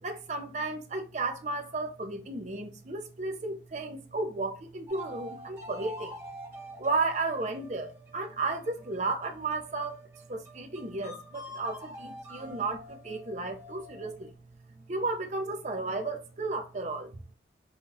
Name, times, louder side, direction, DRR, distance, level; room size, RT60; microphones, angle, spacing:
voice 1, 0.0-6.1 6.8-10.0 10.3-14.3 14.9-17.1, right 3 dB, 40° right, 0.6 m, -33 dB
sound 1, 4.9-14.3, equal, 15° right, 1.1 m, -47 dB
5.6 x 2.3 x 2.7 m
head